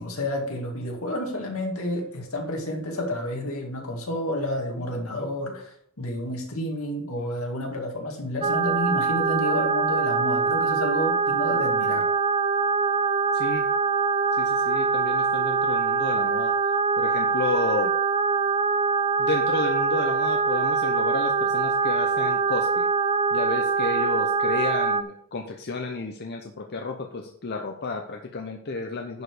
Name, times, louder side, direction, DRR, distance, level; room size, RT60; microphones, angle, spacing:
voice 1, 0.0-12.0, left 1 dB, 75° left, 1 dB, 2.2 m, -30 dB
sound 1, 8.4-25.0, right 5 dB, 25° right, 0.4 m, -23 dB
voice 2, 13.3-13.7 14.4-17.9 19.2-22.9 23.3-29.2, left 3 dB, 50° left, 3 dB, 0.8 m, -32 dB
10.5 x 5.1 x 4.9 m, 0.66 s
head